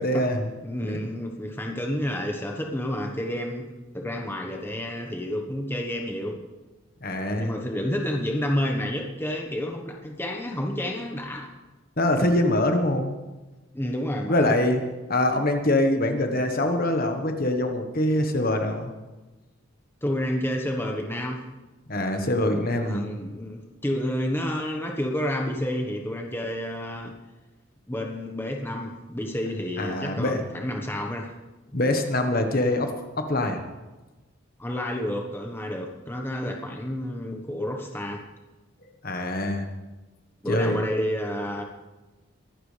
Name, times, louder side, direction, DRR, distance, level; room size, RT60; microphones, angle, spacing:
voice 1, 0.0-0.5 7.0-7.5 12.0-13.2 14.3-14.8 15.1-18.9 21.9-23.0 29.8-30.4 31.7-33.6 39.0-39.6 40.5-40.8, left 1 dB, 45° left, 5 dB, 1.3 m, -24 dB
voice 2, 0.6-3.7 3.9-6.5 7.4-11.5 13.7-14.6 20.0-21.4 22.7-27.2 27.9-31.3 31.7-32.0 34.6-38.2 40.4-41.6, left 1 dB, 10° left, 2 dB, 1.2 m, -30 dB
23.5 x 12.0 x 3.4 m, 1.1 s
head